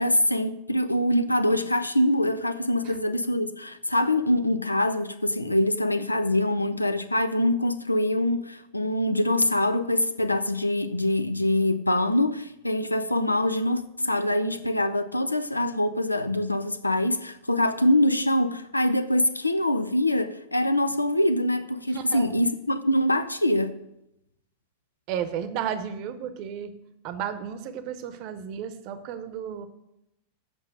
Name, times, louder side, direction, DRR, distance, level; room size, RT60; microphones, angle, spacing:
voice 1, 0.0-23.7, left 1 dB, 85° left, 0.5 m, -24 dB
voice 2, 21.9-22.3 25.1-26.7 27.0-29.7, right 8 dB, 45° right, 0.8 m, -33 dB
8.0 x 5.4 x 7.6 m
figure-of-eight pair, 90°, 0 cm